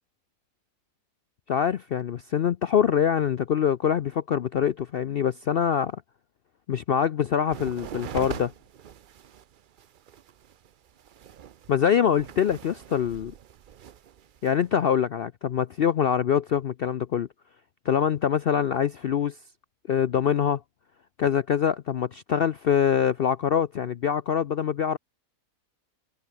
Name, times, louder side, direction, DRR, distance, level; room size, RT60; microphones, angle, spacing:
voice 1, 1.5-6.0 6.7-8.5 11.7-13.3 14.4-17.3 17.9-19.4 19.9-20.6 21.2-25.0, left 8 dB, 60° left, 0.6 m, -24 dB
sound 1, 7.5-14.8, right 9 dB, 60° right, 0.5 m, -42 dB
omnidirectional pair, 1.6 m